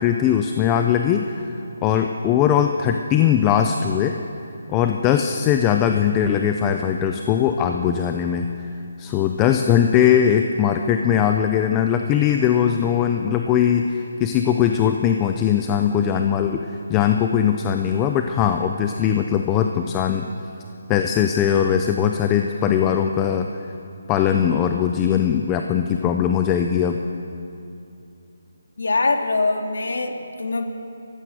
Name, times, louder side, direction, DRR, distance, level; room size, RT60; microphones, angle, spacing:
voice 1, 0.0-1.5 1.8-4.2 4.7-8.5 9.0-20.3 20.9-23.5 24.1-27.0, left 9 dB, 10° left, 5 dB, 0.5 m, -20 dB
voice 2, 28.8-30.7, left 3 dB, 75° left, 5 dB, 2.4 m, -23 dB
29.5 x 15.0 x 7.8 m, 2.7 s
hypercardioid pair, 180°, 0 cm